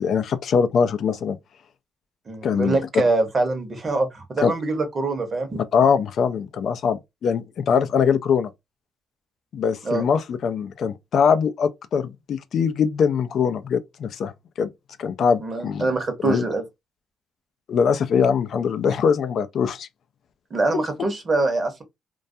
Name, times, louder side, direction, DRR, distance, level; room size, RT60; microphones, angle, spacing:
voice 1, 0.0-1.4 2.4-2.8 4.4-4.5 5.7-8.5 9.5-14.7 15.0-15.8 16.2-16.4 17.7-19.9, left 6 dB, 65° left, 0.3 m, -22 dB
voice 2, 2.3-5.6 9.8-10.0 15.4-16.6 20.5-21.8, right 2 dB, 35° right, 0.8 m, -24 dB
2.2 x 2.1 x 2.6 m
cardioid pair, 90°, 0 cm